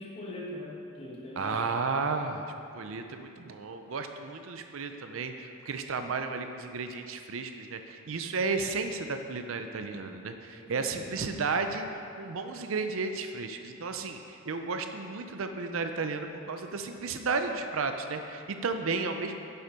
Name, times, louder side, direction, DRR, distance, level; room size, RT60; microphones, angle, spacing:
voice 1, 0.0-1.6 1.9-2.2 10.5-11.4, left 1 dB, 25° left, -4 dB, 1.4 m, -42 dB
voice 2, 1.4-2.5 2.7-11.8 12.2-19.3, right 4 dB, 70° right, 6 dB, 0.6 m, -33 dB
8.0 x 7.0 x 5.1 m, 2.6 s
head